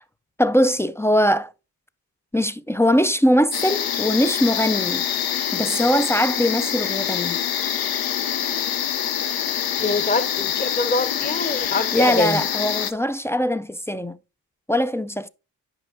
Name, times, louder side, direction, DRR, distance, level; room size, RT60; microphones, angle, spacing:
voice 1, 0.4-1.5 2.3-5.0 5.5-7.4 11.9-14.2 14.7-15.3, equal, 10° left, 0.3 m, -21 dB
sound 1, 3.5-12.9, left 9 dB, 75° left, 0.7 m, -25 dB
voice 2, 9.8-12.4, left 2 dB, 25° left, 0.9 m, -24 dB
9.9 x 5.2 x 2.6 m
cardioid pair, 60°, 37 cm